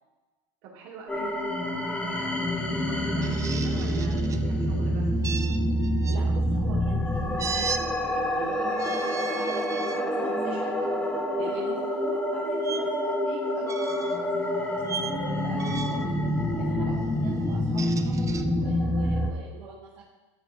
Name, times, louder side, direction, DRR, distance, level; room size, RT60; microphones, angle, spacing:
voice 1, 0.6-5.1, right 5 dB, 65° right, -3 dB, 2.8 m, -45 dB
sound 1, 1.1-19.3, equal, 10° left, 1.3 m, -27 dB
sound 2, 3.2-4.4 5.2-6.2 7.4-7.8 8.7-10.0 10.6-10.8 12.6-12.8 13.6-14.2 14.9-15.2 15.6-16.1 17.5-18.4, right 6 dB, 20° right, 0.5 m, -36 dB
voice 2, 6.1-10.8 11.4-20.0, right 5 dB, 85° right, -5 dB, 1.6 m, -42 dB
13.0 x 5.9 x 2.8 m, 1.2 s
supercardioid pair, 115°, 15 cm